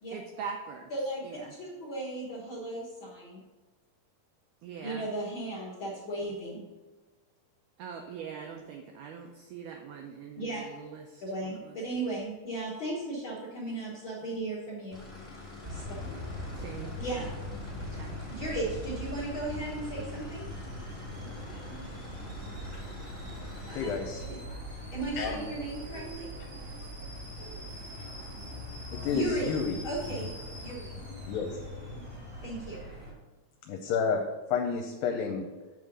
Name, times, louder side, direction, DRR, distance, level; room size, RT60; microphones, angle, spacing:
voice 1, 0.1-0.9 1.2-1.5 4.6-5.1 7.8-11.8 16.5-17.3 17.9-18.2, right 6 dB, 85° right, 2 dB, 1.8 m, -42 dB
voice 2, 0.9-1.2 1.6-3.4 4.8-6.6 10.4-10.6 11.2-15.0 15.7-15.8 17.0-17.3 18.3-20.4 23.7-24.0 24.9-26.3 29.1-30.3 30.6-31.0 32.4-32.8, right 2 dB, 60° left, -7 dB, 1.3 m, -36 dB
sound 1, 14.9-24.0, left 3 dB, 30° left, 1.0 m, -46 dB
sound 2, 15.6-33.1, equal, 10° right, 0.8 m, -41 dB
Alarm / Boiling, 17.9-32.8, right 1 dB, 55° right, 0.8 m, -51 dB
voice 3, 23.8-24.2 25.2-25.5 28.9-29.8 31.2-31.5 32.1-32.2 33.6-34.2 34.5-35.5, left 6 dB, 80° left, 3 dB, 2.3 m, -30 dB
7.9 x 3.7 x 6.5 m, 1.2 s
omnidirectional pair, 4.3 m